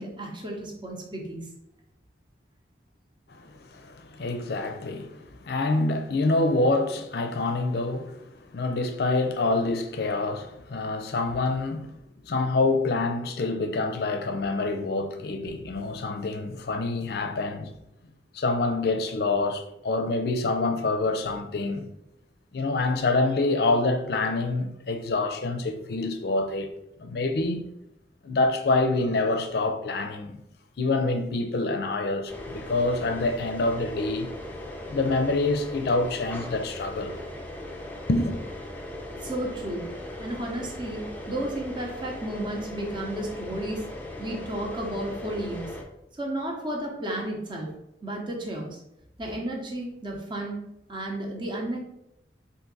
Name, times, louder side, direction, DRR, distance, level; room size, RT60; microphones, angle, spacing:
voice 1, 0.0-1.5 39.2-39.8 40.2-43.8 44.2-45.7 46.2-47.7 48.0-48.8 49.2-50.6 50.9-51.8, right 1 dB, 25° right, 0.8 m, -33 dB
voice 2, 3.3-12.0 12.2-17.7 18.3-21.9 22.5-26.7 27.0-27.6 28.2-30.4 30.8-34.3 34.9-37.2 38.1-38.4, left 2 dB, 60° left, 0.5 m, -26 dB
sound 1, 32.3-45.8, left 1 dB, 10° left, 0.5 m, -39 dB
3.8 x 2.6 x 3.9 m
head